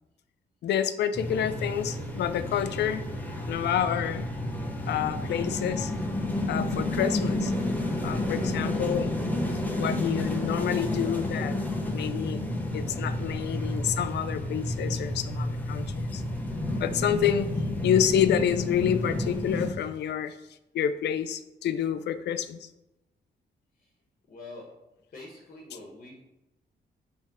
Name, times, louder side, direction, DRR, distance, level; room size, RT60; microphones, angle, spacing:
voice 1, 0.6-3.0 3.5-4.3 4.9-5.9 6.5-7.5 8.0-9.1 9.8-11.6 11.9-16.2 16.8-17.5 17.8-20.3 20.7-22.7, left 9 dB, 85° left, 13 dB, 0.5 m, -28 dB
sound 1, 1.1-19.7, left 1 dB, 10° left, 1.0 m, -30 dB
voice 2, 24.3-24.7 25.1-26.2, left 2 dB, 50° left, 0 dB, 1.2 m, -45 dB
7.3 x 3.5 x 6.1 m, 0.94 s
cardioid pair, 140°, 17 cm